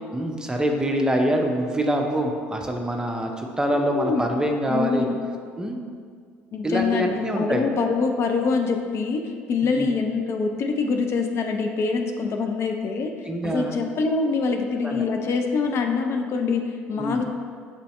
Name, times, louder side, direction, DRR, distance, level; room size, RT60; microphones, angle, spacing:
voice 1, 0.1-5.1 5.6-5.8 6.6-7.6 9.6-9.9 13.3-13.8 14.8-15.0 16.9-17.2, right 1 dB, 10° right, 2 dB, 0.5 m, -25 dB
voice 2, 3.7-4.2 4.7-5.1 6.5-7.1 7.4-13.1 13.4-17.3, left 4 dB, 45° left, 4 dB, 0.4 m, -25 dB
6.2 x 2.7 x 3.1 m, 2.1 s
figure-of-eight pair, 55°, 6 cm